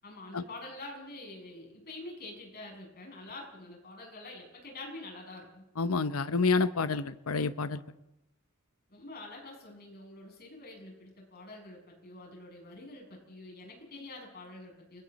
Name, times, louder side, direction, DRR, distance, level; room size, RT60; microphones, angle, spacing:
voice 1, 0.0-5.6 8.9-15.0, left 2 dB, 45° left, 0 dB, 7.4 m, -46 dB
voice 2, 5.8-7.8, left 4 dB, 75° left, 12 dB, 0.8 m, -28 dB
30.0 x 22.5 x 4.2 m, 0.92 s
head